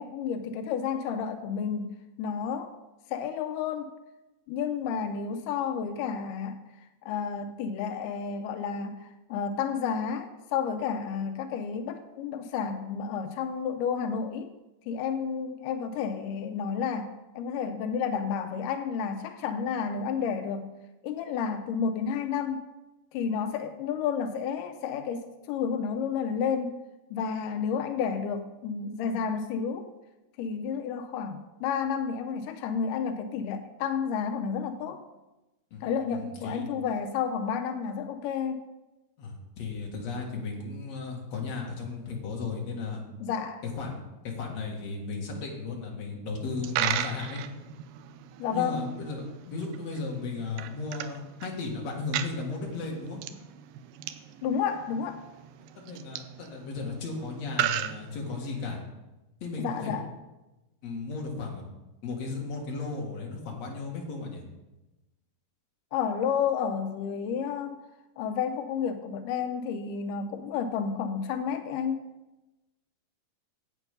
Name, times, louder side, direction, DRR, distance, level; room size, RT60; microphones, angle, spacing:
voice 1, 0.0-2.7 3.1-3.9 4.5-14.5 14.9-20.7 21.0-22.6 23.1-26.8 27.1-29.9 30.4-35.0 35.8-38.6 43.2-43.6 48.4-48.9 54.4-55.2 59.6-60.1 65.9-67.8 68.2-72.0, left 6 dB, 85° left, 8 dB, 1.9 m, -31 dB
voice 2, 35.7-36.7 39.2-43.0 43.7-47.4 48.5-53.2 55.8-58.8 59.4-60.0 60.8-61.6 62.0-64.4, left 4 dB, 50° left, -1 dB, 2.8 m, -35 dB
Coin (dropping), 46.4-58.7, right 11 dB, 80° right, 2.1 m, -37 dB
10.0 x 8.3 x 5.3 m, 1.0 s
omnidirectional pair, 4.4 m